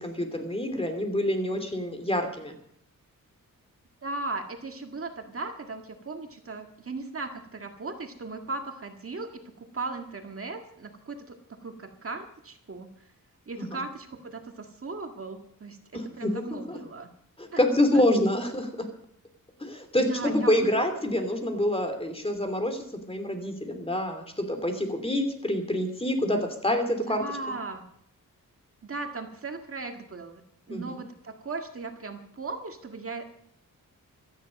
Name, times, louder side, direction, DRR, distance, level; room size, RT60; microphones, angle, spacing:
voice 1, 0.0-2.5 13.6-13.7 15.9-16.8 17.4-18.7 19.6-27.2 30.7-30.9, left 1 dB, 15° left, 6 dB, 2.9 m, -27 dB
voice 2, 4.0-11.4 11.6-12.9 13.5-17.1 17.5-17.6 17.9-18.0 20.1-20.7 27.1-27.8 28.8-30.4 30.7-33.2, right 3 dB, 40° right, 4 dB, 1.9 m, -37 dB
17.0 x 13.0 x 5.3 m, 0.71 s
wide cardioid pair, 125°, 33 cm